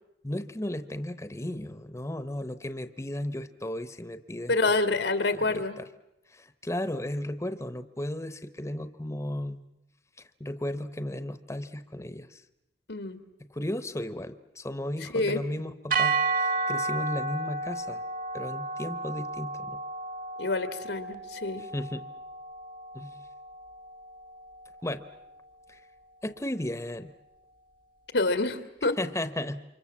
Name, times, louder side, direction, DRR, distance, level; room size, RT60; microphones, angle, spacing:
voice 1, 0.2-4.8 5.3-5.9 6.3-9.6 10.2-12.4 13.5-18.0 18.3-19.8 21.6-22.1 22.9-23.3 24.8-25.1 25.7-25.8 26.2-27.1 29.0-29.6, left 1 dB, 15° left, 11 dB, 0.9 m, -35 dB
voice 2, 4.5-5.8 12.9-13.2 15.0-15.4 20.4-21.7 28.1-29.0, left 2 dB, 90° left, 9 dB, 2.0 m, -27 dB
sound 1, 15.9-24.2, right 3 dB, 50° right, 1.8 m, -32 dB
29.0 x 24.5 x 7.3 m, 0.87 s
head